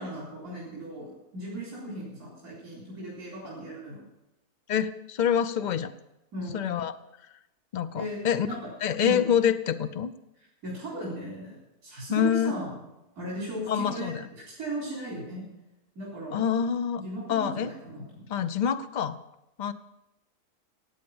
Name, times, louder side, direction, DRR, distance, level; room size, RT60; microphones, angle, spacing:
voice 1, 0.0-4.0 6.3-6.7 8.0-8.7 9.0-9.2 10.6-12.8 13.2-15.4 15.9-16.4 17.0-18.3, right 1 dB, 70° right, -6 dB, 4.4 m, -37 dB
voice 2, 4.7-5.9 6.5-7.0 7.7-8.5 8.8-10.1 12.1-12.5 13.7-14.3 16.3-17.0 17.3-17.7 18.3-19.2 19.6-19.7, left 8 dB, 60° left, 11 dB, 0.4 m, -26 dB
15.5 x 8.8 x 7.1 m, 0.94 s
omnidirectional pair, 1.6 m